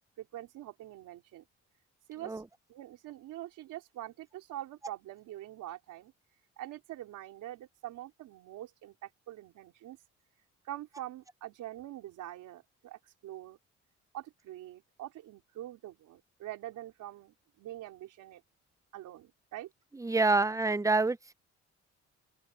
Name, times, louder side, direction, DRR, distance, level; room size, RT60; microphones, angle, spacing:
voice 1, 0.2-1.4 2.1-2.4 2.7-6.1 6.6-10.0 10.6-13.6 14.1-18.4 18.9-19.7, right 14 dB, 90° right, 4.1 m, -44 dB
voice 2, 19.9-21.3, right 3 dB, 10° right, 0.8 m, -27 dB
open air
cardioid pair, 90°, 30 cm